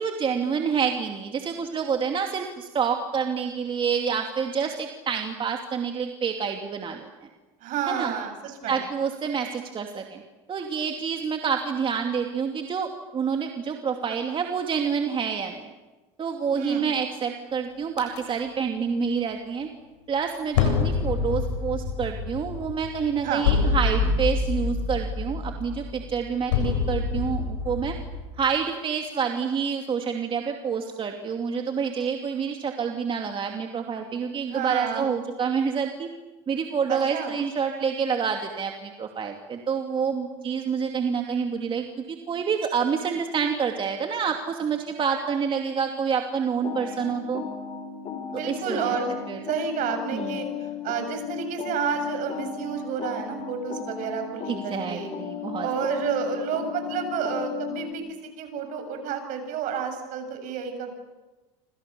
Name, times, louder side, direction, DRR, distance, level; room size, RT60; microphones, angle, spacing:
voice 1, 0.0-7.1 7.9-8.1 8.7-10.2 10.5-15.7 16.2-19.7 20.1-27.9 28.4-36.1 36.5-47.4 48.5-49.0 49.3-49.4 50.1-50.5 54.5-55.7, right 6 dB, 35° right, 3 dB, 2.7 m, -28 dB
voice 2, 7.6-8.8 16.5-16.9 23.2-23.4 34.5-35.1 36.9-37.3 48.3-49.1 49.5-50.5 50.8-55.1 55.6-60.9, right 7 dB, 60° right, 6 dB, 7.9 m, -30 dB
sound 1, 18.0-18.2 20.5-28.2, left 4 dB, 90° left, 7.6 m, -26 dB
sound 2, 46.6-57.9, left 7 dB, 45° left, 5.9 m, -35 dB
28.5 x 27.0 x 7.0 m, 1.2 s
supercardioid pair, 100°, 15 cm